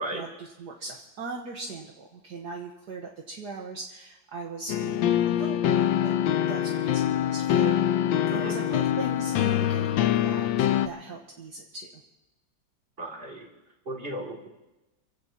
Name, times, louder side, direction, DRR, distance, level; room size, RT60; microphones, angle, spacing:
voice 1, 0.0-6.1 6.5-11.9, right 3 dB, 60° right, 0 dB, 1.8 m, -39 dB
sound 1, 4.7-10.9, left 10 dB, 80° left, 1.4 m, -24 dB
voice 2, 13.0-13.5 13.8-14.5, right 1 dB, 30° right, 0 dB, 3.1 m, -35 dB
28.5 x 16.5 x 2.9 m, 1.0 s
omnidirectional pair, 2.1 m